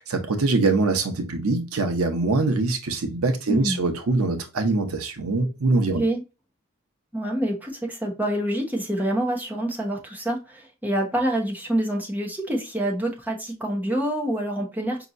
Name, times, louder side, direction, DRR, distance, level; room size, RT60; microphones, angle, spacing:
voice 1, 0.1-6.0, right 3 dB, 85° right, 0.8 m, -23 dB
voice 2, 3.5-3.8 5.8-6.2 7.1-15.0, right 1 dB, 10° right, 0.9 m, -26 dB
5.2 x 2.8 x 2.5 m
head